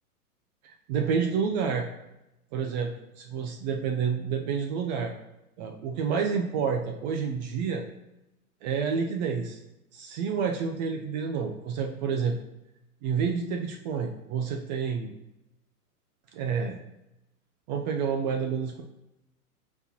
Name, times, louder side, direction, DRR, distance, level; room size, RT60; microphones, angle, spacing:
voice 1, 0.6-1.9 2.5-5.1 5.6-7.8 8.6-9.6 9.9-12.4 13.0-15.1 16.3-16.8 17.7-18.8, right 6 dB, 30° right, 3 dB, 0.5 m, -29 dB
7.8 x 4.2 x 2.9 m, 0.92 s
hypercardioid pair, 110°, 46 cm